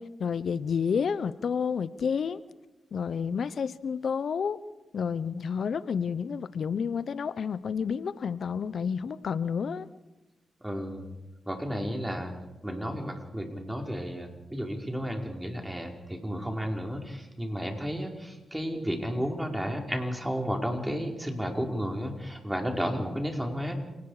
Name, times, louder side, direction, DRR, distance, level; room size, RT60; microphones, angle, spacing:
voice 1, 0.0-2.4 2.9-4.6 4.9-9.9, left 6 dB, 70° left, 17 dB, 0.8 m, -30 dB
voice 2, 10.6-11.0 11.5-12.3 12.6-23.7, equal, 10° right, 2 dB, 5.0 m, -32 dB
28.0 x 19.0 x 5.0 m, 1.0 s
supercardioid pair, 50°, 0 cm